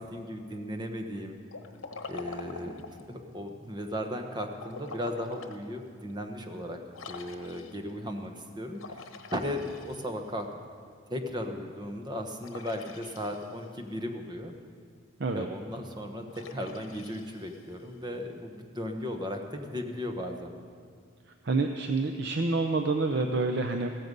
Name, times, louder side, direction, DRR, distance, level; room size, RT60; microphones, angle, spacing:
voice 1, 0.0-1.4 2.1-6.8 7.1-10.5 11.1-14.5 15.3-20.5, equal, 20° right, 5 dB, 1.1 m, -36 dB
Liquid, 1.5-3.1 4.5-5.6 6.1-6.2 6.9-7.9 8.7-10.4 12.4-13.8 16.3-17.9, left 4 dB, 75° left, 1.1 m, -45 dB
voice 2, 21.4-23.9, right 3 dB, 55° right, 5 dB, 0.6 m, -27 dB
15.0 x 14.5 x 5.4 m, 2.1 s
head